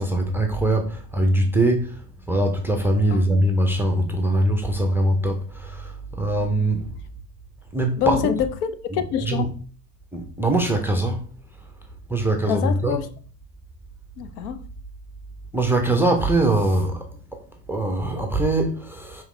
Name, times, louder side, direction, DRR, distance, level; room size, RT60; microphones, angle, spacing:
voice 1, 0.0-2.0 2.3-6.9 7.7-8.3 8.9-9.5 10.1-11.2 12.1-13.0 15.5-17.1 17.3-17.4 17.7-19.2, right 1 dB, 5° right, 0.4 m, -22 dB
voice 2, 8.0-9.5 12.5-13.1 14.2-14.6, left 9 dB, 65° left, 0.7 m, -26 dB
4.8 x 3.0 x 3.1 m
hypercardioid pair, 85°, 50 cm